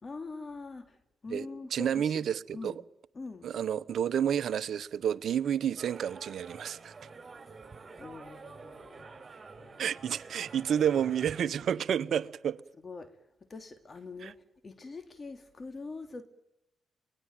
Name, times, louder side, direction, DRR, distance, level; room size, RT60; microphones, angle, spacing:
voice 1, 0.0-1.0 1.2-2.2 2.5-2.8 3.1-3.5 8.0-9.3 9.6-9.9 12.8-13.2 13.5-14.4 14.6-16.2, left 3 dB, 40° left, 2.8 m, -43 dB
voice 2, 1.7-2.8 3.4-6.9 9.8-12.6 14.2-14.3, right 9 dB, 65° right, 0.9 m, -30 dB
sound 1, 5.8-11.4, right 4 dB, 35° right, 7.3 m, -48 dB
24.0 x 19.0 x 9.2 m
supercardioid pair, 50°, 0 cm